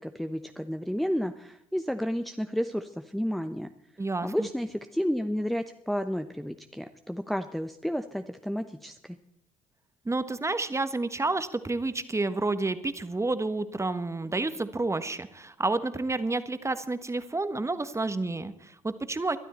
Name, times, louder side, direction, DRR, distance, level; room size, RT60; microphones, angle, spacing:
voice 1, 0.0-3.7 4.2-9.2, equal, ahead, 7 dB, 0.9 m, -31 dB
voice 2, 4.0-4.5 10.0-19.4, right 2 dB, 15° right, 12 dB, 1.4 m, -30 dB
22.0 x 12.5 x 4.4 m, 0.78 s
figure-of-eight pair, 50°, 18 cm